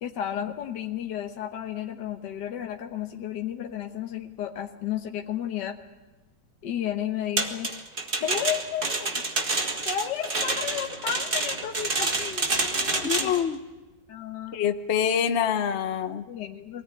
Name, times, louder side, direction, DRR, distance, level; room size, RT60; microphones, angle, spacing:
voice 1, 0.0-5.8 6.6-7.7 8.2-9.3 9.9-13.3 14.1-14.6 16.3-16.8, left 10 dB, 75° left, 3 dB, 1.7 m, -33 dB
sound 1, 7.4-13.4, right 3 dB, 30° right, 1.9 m, -28 dB
voice 2, 13.0-13.6 14.5-16.2, left 8 dB, 45° left, 7 dB, 1.1 m, -25 dB
24.0 x 18.0 x 9.7 m, 1.2 s
omnidirectional pair, 1.9 m